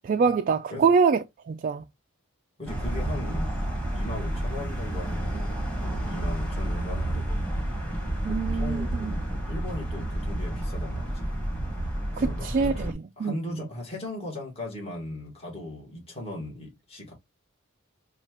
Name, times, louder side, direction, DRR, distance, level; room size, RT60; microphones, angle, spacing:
voice 1, 0.0-1.8 8.2-9.2 12.2-13.3, right 5 dB, 40° right, 0.3 m, -25 dB
voice 2, 2.6-3.5 3.9-7.3 8.3-11.4 12.2-17.1, left 1 dB, 30° left, 1.7 m, -38 dB
sound 1, 2.7-12.9, right 1 dB, 5° left, 1.5 m, -30 dB
5.8 x 2.4 x 2.9 m
head